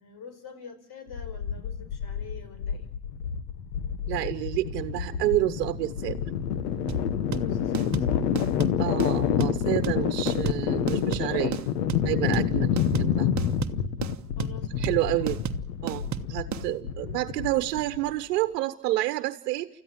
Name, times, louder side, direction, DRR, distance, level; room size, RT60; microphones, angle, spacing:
voice 1, 0.0-2.9 7.4-8.3 14.4-15.5, left 5 dB, 50° left, 11 dB, 4.9 m, -46 dB
sound 1, 1.1-18.1, left 8 dB, 85° left, 1.6 m, -28 dB
voice 2, 4.1-6.2 8.8-11.6 12.0-12.7 13.0-13.3 14.8-15.4 15.8-19.7, right 16 dB, 85° right, 10 dB, 1.1 m, -29 dB
sound 2, 6.9-16.7, right 9 dB, 35° right, 1.3 m, -33 dB
30.0 x 14.5 x 7.4 m, 0.85 s
supercardioid pair, 85°, 47 cm